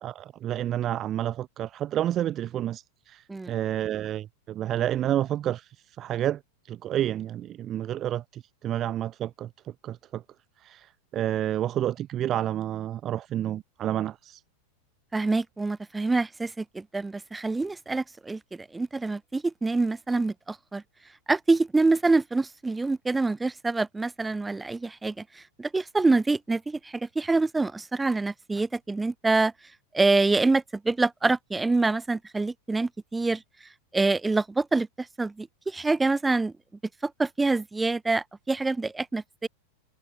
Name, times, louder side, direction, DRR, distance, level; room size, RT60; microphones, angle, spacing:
voice 1, 0.0-6.4 6.7-9.5 9.8-10.2 10.6-14.4, right 12 dB, 30° right, 2.8 m, -30 dB
voice 2, 15.1-20.8 21.3-29.5 29.9-33.4 33.9-36.5 37.0-39.5, right 3 dB, 10° right, 6.2 m, -26 dB
figure-of-eight pair, 90°, 0 cm